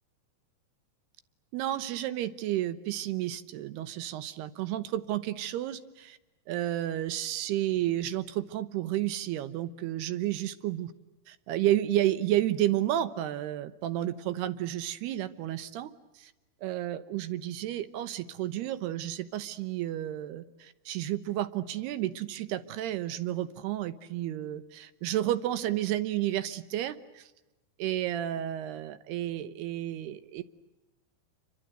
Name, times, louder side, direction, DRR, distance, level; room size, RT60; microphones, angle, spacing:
voice 1, 1.5-6.2 6.5-10.9 11.3-15.9 16.2-16.3 16.6-27.2 27.8-30.4, right 13 dB, 75° right, 13 dB, 2.9 m, -31 dB
28.5 x 25.0 x 7.9 m, 1.0 s
omnidirectional pair, 5.1 m